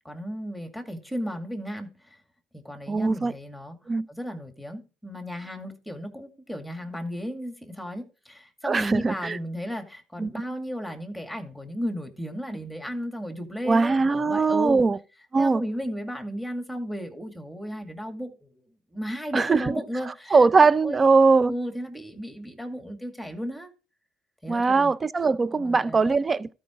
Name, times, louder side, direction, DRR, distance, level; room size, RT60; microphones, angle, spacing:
voice 1, 0.0-2.2 2.5-3.8 4.1-14.8 15.4-18.7 18.9-20.4 20.8-21.0 21.5-23.7 24.4-24.9 25.5-26.0, equal, ahead, 2.2 m, -34 dB
voice 2, 2.9-3.3 3.9-4.1 8.6-9.4 10.2-10.3 13.7-15.0 15.3-15.6 19.3-19.8 20.3-21.5 24.5-26.5, right 4 dB, 30° right, 0.5 m, -21 dB
13.0 x 5.1 x 3.6 m
supercardioid pair, 80°, 0 cm